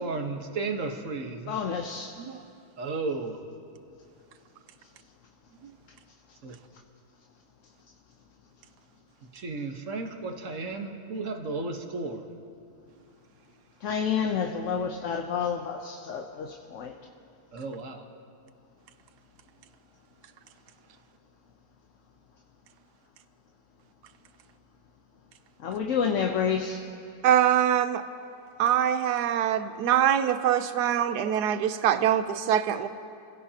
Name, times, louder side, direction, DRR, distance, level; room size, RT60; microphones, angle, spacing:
voice 1, 0.0-1.5 2.8-3.4 6.4-6.5 9.3-12.2 17.5-18.0, right 3 dB, 50° right, 1.5 m, -33 dB
voice 2, 1.5-2.1 13.8-16.9 25.6-26.8, left 6 dB, 55° left, 1.0 m, -29 dB
voice 3, 27.2-28.0 28.6-32.9, right 10 dB, 80° right, 1.3 m, -24 dB
29.0 x 16.5 x 2.9 m
omnidirectional pair, 1.7 m